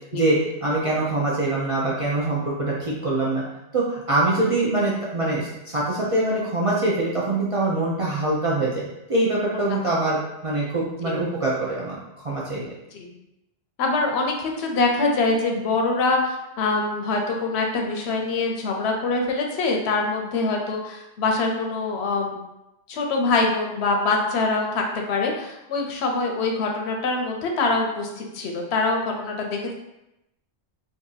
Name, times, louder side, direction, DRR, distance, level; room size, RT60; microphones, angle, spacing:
voice 1, 0.1-3.4 3.7-10.2 10.4-12.0 12.2-12.7, right 2 dB, 45° right, -6 dB, 0.5 m, -24 dB
voice 2, 13.8-22.4 22.9-29.7, left 3 dB, 75° left, 1 dB, 0.8 m, -24 dB
2.7 x 2.5 x 3.8 m, 0.91 s
omnidirectional pair, 1.2 m